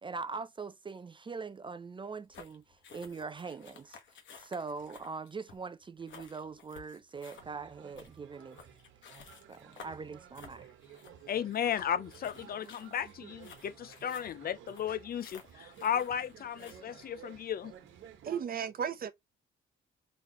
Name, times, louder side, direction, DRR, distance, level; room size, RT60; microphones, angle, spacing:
voice 1, 0.0-4.0 4.4-8.6 9.5-10.7, right 4 dB, 25° right, 0.4 m, -42 dB
sound 1, 2.3-16.8, left 6 dB, 70° left, 1.4 m, -55 dB
sound 2, 7.1-18.4, right 9 dB, 85° right, 1.3 m, -54 dB
voice 2, 11.3-17.7, left 9 dB, 50° left, 0.5 m, -35 dB
voice 3, 18.2-19.1, right 8 dB, 50° right, 0.8 m, -34 dB
4.0 x 3.2 x 3.0 m
cardioid pair, 90°, 20 cm